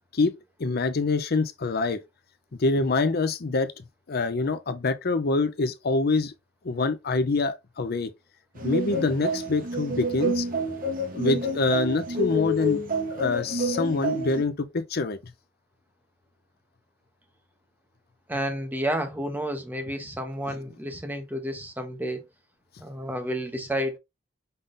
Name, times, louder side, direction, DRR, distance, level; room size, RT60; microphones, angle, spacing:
voice 1, 0.6-2.0 2.6-6.3 6.6-8.1 8.6-10.5 11.1-12.8 13.1-15.2, left 3 dB, 55° left, 0.6 m, -25 dB
sound 1, 8.6-14.4, equal, 45° right, 1.1 m, -28 dB
voice 2, 18.3-22.2 22.8-24.0, equal, 10° right, 1.0 m, -30 dB
5.5 x 3.6 x 2.6 m
head